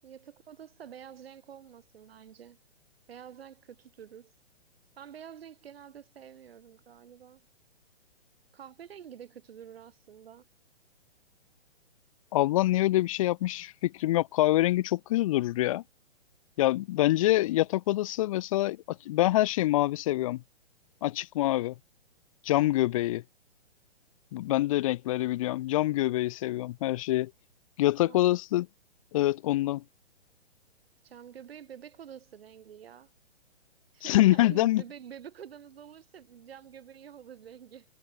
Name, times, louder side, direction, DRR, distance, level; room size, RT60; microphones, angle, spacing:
voice 1, 0.0-2.6 3.1-4.3 5.0-7.5 8.5-10.5 28.1-28.3 31.0-33.1 33.9-37.9, right 9 dB, 60° right, 7.5 m, -48 dB
voice 2, 12.3-15.8 16.6-20.4 21.0-21.7 22.4-23.2 24.3-27.3 27.8-28.7 29.1-29.8 34.0-34.8, left 16 dB, 30° left, 1.1 m, -25 dB
hypercardioid pair, 155°, 34 cm